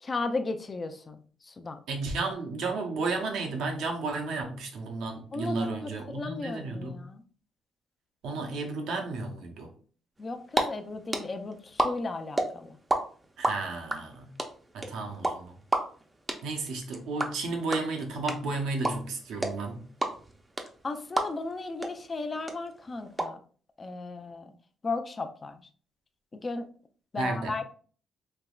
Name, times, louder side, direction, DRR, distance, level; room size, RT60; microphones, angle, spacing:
voice 1, 0.0-1.8 5.3-7.2 10.2-12.8 20.8-23.4 23.8-24.5 24.8-25.6 26.3-26.7 27.1-27.6, left 3 dB, 35° left, 7 dB, 0.4 m, -35 dB
voice 2, 1.9-7.0 8.2-9.7 13.4-14.3 14.7-15.6 16.4-19.9 27.2-27.6, right 3 dB, 85° right, 2 dB, 0.7 m, -33 dB
sound 1, 10.2-10.6 10.9-13.0 13.2-21.5 21.8-21.9 22.2-23.2, right 2 dB, 20° right, 0.5 m, -28 dB
3.4 x 2.9 x 2.3 m, 0.43 s
cardioid pair, 90°, 0 cm